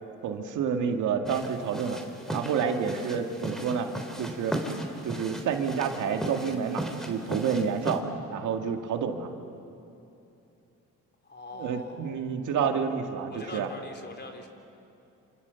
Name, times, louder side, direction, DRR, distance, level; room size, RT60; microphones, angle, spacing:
voice 1, 0.2-2.0 2.3-3.9 4.2-4.6 5.0-8.0 8.3-9.3 11.6-13.7, right 6 dB, 80° right, 4 dB, 2.1 m, -29 dB
sound 1, 1.2-8.0, right 1 dB, ahead, 3.5 m, -36 dB
voice 2, 11.2-12.3 13.3-14.5, left 2 dB, 35° left, 4 dB, 3.8 m, -43 dB
28.0 x 27.5 x 7.1 m, 2.8 s
cardioid pair, 90°, 30 cm